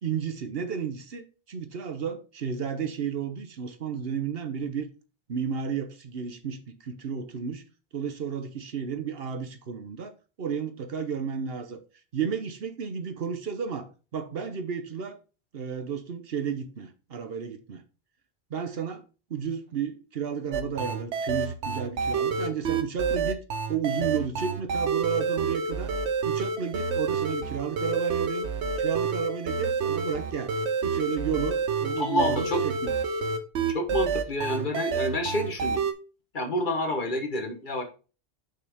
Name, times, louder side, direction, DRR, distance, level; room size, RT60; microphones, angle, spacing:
voice 1, 0.0-4.9 5.3-7.6 7.9-11.8 12.1-15.2 15.5-17.8 18.5-19.0 19.3-23.4 23.7-25.9 26.2-28.5 28.8-30.5 30.8-32.9, right 7 dB, 60° right, 1.1 m, -32 dB
sound 1, 20.5-35.9, right 5 dB, 85° right, 1.1 m, -28 dB
voice 2, 32.0-32.6 33.7-35.8 36.3-37.8, left 1 dB, 50° left, 1.3 m, -28 dB
6.0 x 5.8 x 3.5 m
omnidirectional pair, 1.1 m